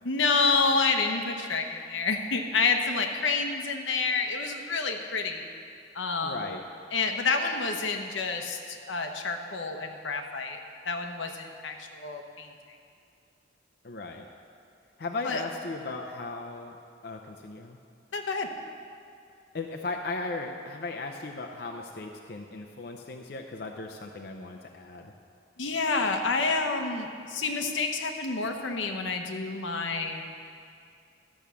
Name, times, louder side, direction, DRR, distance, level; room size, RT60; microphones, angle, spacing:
voice 1, 0.0-5.5 5.9-6.4 6.9-10.6 10.9-12.5 15.2-15.4 18.1-18.5 25.6-30.2, left 4 dB, 85° left, 4 dB, 1.0 m, -28 dB
voice 2, 6.2-6.6 13.8-14.3 15.0-16.8 17.0-17.8 19.5-25.1, left 3 dB, 55° left, 2 dB, 0.5 m, -37 dB
12.0 x 6.2 x 7.0 m, 2.4 s
head